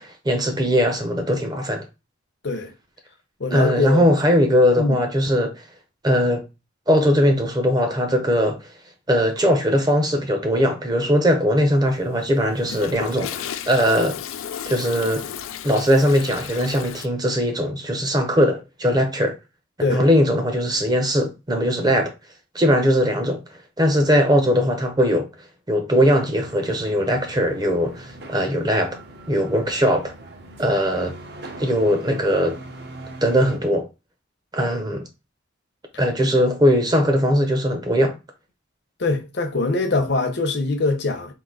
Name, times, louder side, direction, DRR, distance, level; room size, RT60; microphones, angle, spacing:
voice 1, 0.0-1.9 3.5-5.6 6.0-6.4 6.9-8.7 9.1-14.2 14.7-15.2 15.6-19.4 19.9-22.1 22.5-23.4 23.8-25.3 25.7-29.0 29.3-30.1 30.6-31.1 31.6-32.6 33.2-33.9 34.5-35.1 36.0-38.2, equal, 20° right, 0.7 m, -20 dB
voice 2, 3.4-4.0 4.8-5.0 19.8-20.0 39.0-41.3, left 3 dB, 55° left, 0.8 m, -23 dB
Toilet flush, 11.8-17.1, left 9 dB, 80° left, 0.4 m, -34 dB
sound 1, 26.4-33.6, right 2 dB, 55° right, 0.8 m, -41 dB
3.8 x 2.6 x 3.8 m
head